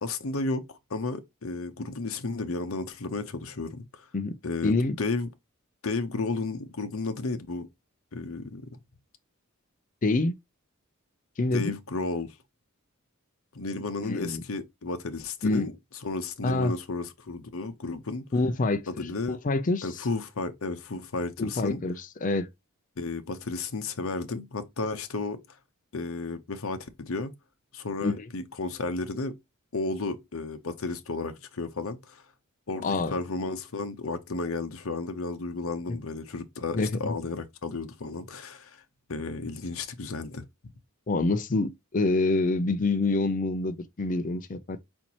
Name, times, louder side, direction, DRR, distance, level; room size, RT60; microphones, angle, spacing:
voice 1, 0.0-4.1 4.4-5.3 5.8-7.7 8.1-8.7 11.5-12.4 13.5-15.7 16.0-18.2 18.9-19.4 19.8-21.8 23.0-25.4 25.9-27.3 27.7-29.3 29.7-32.2 32.7-38.8 39.1-40.4, left 3 dB, 70° left, 0.8 m, -33 dB
voice 2, 4.6-5.0 10.0-10.4 11.4-11.7 14.0-14.4 15.4-15.7 16.4-16.7 18.3-18.9 19.3-19.9 21.4-22.5 28.0-28.1 32.8-33.1 36.7-37.2 41.1-44.8, left 2 dB, 40° left, 0.5 m, -26 dB
4.4 x 4.2 x 2.8 m
head